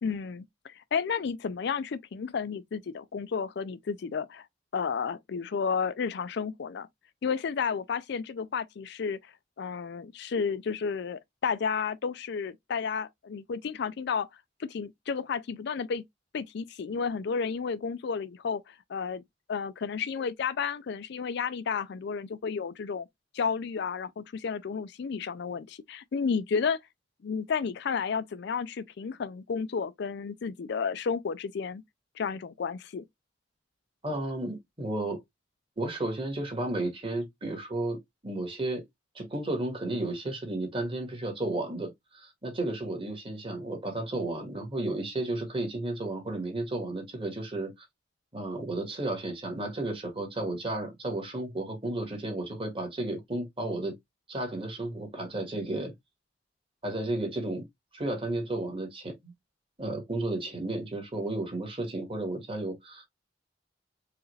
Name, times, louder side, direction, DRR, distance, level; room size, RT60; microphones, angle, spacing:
voice 1, 0.0-4.5 4.7-6.9 7.2-14.3 14.6-16.0 16.3-19.2 19.5-23.1 23.3-26.8 27.2-31.8 32.2-33.1, left 6 dB, 65° left, 0.4 m, -32 dB
voice 2, 34.0-35.2 35.8-38.8 39.1-47.7 48.3-53.9 54.3-55.9 56.8-57.6 57.9-59.3 59.8-63.1, right 2 dB, 30° right, 1.7 m, -33 dB
4.7 x 2.5 x 3.1 m
head